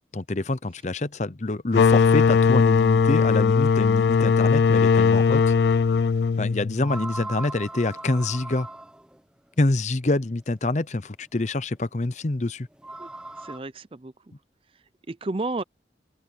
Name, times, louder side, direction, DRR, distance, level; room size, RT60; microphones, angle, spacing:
voice 1, 0.1-5.5 6.4-8.7 9.6-12.7, left 2 dB, 40° left, 0.7 m, -26 dB
sound 1, 1.7-7.2, left 5 dB, 70° left, 0.4 m, -19 dB
sound 2, 5.0-5.1 6.8-9.2 11.0-11.1 12.7-13.6, right 2 dB, 5° right, 1.1 m, -38 dB
voice 2, 13.4-14.3 15.1-15.6, right 2 dB, 30° right, 0.6 m, -32 dB
head